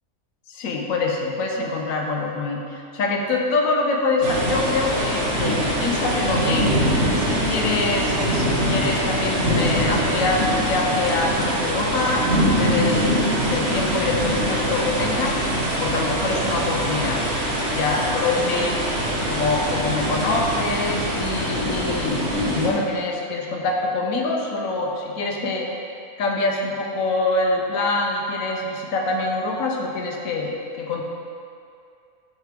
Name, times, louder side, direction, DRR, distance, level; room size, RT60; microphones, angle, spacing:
voice 1, 0.5-6.8 7.2-13.1 13.5-15.4 15.8-17.3 17.7-18.8 19.3-25.7 26.2-31.0, left 3 dB, 85° left, 0 dB, 1.1 m, -25 dB
sound 1, 4.2-22.7, equal, 55° right, 1.1 m, -23 dB
6.6 x 4.6 x 3.3 m, 2.4 s
omnidirectional pair, 1.4 m